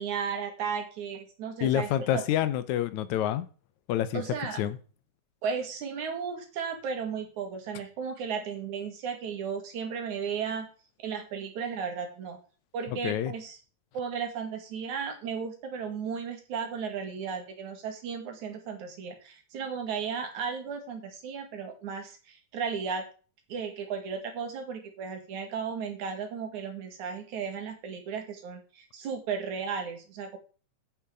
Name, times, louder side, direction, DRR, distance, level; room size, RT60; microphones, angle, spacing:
voice 1, 0.0-2.2 4.1-4.6 5.4-10.7 11.0-12.4 12.7-13.6 13.9-23.0 23.5-30.4, right 6 dB, 80° right, 3.5 m, -35 dB
voice 2, 1.6-3.5 3.9-4.2 4.6-4.8 12.9-13.3, left 11 dB, 85° left, 2.2 m, -27 dB
8.8 x 8.7 x 4.9 m
omnidirectional pair, 3.3 m